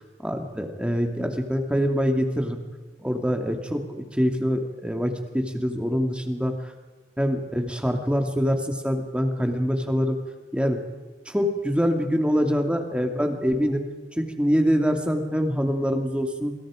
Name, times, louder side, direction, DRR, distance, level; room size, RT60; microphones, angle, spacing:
voice 1, 0.2-2.6 3.0-6.7 7.2-10.2 10.5-10.8 11.3-13.9 14.2-16.5, equal, 5° right, 4 dB, 2.5 m, -25 dB
28.0 x 25.5 x 5.1 m, 1.4 s
head